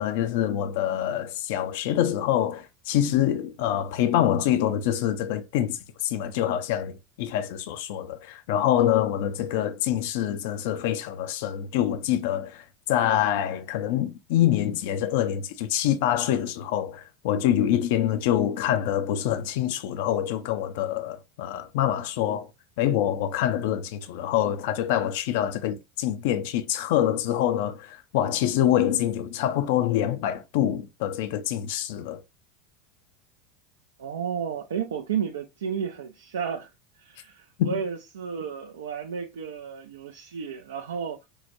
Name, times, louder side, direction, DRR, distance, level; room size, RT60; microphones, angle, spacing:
voice 1, 0.0-22.5 22.8-32.2 37.6-37.7, left 11 dB, 70° left, 0.4 m, -25 dB
voice 2, 34.0-36.7 37.0-41.2, right 7 dB, 90° right, 0.3 m, -32 dB
4.6 x 2.1 x 2.5 m
hypercardioid pair, 100°, 0 cm